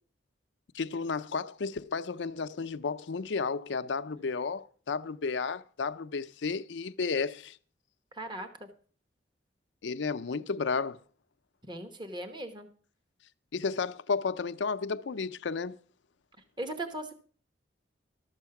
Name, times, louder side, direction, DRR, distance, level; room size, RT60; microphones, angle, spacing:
voice 1, 0.7-7.6 9.8-11.0 13.5-15.8, left 4 dB, 80° left, 0.5 m, -32 dB
voice 2, 8.1-8.7 11.6-12.7 16.6-17.2, right 1 dB, 25° right, 1.0 m, -38 dB
12.5 x 7.3 x 5.8 m
head